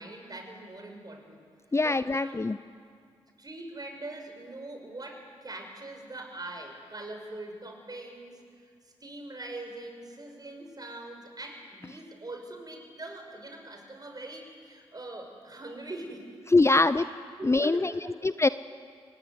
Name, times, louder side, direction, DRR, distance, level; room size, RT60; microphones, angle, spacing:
voice 1, 0.0-1.4 1.8-2.4 3.4-18.2, right 2 dB, 35° right, 4 dB, 6.5 m, -43 dB
voice 2, 1.7-2.6 16.5-17.0 17.4-17.9 18.2-18.5, left 3 dB, 25° left, 14 dB, 0.7 m, -23 dB
23.5 x 20.0 x 9.6 m, 2.2 s
supercardioid pair, 40°, 12 cm